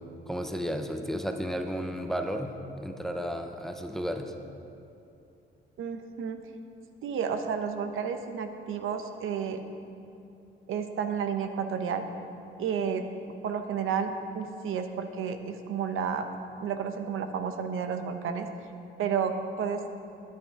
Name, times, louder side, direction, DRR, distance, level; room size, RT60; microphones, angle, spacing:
voice 1, 0.3-4.3, equal, ahead, 5 dB, 0.7 m, -33 dB
voice 2, 5.8-6.4 7.0-9.6 10.7-12.0 12.6-13.1 13.4-16.3 16.6-18.5 19.0-19.8, right 7 dB, 80° right, 7 dB, 0.8 m, -31 dB
10.0 x 9.7 x 4.8 m, 2.7 s
cardioid pair, 105°, 21 cm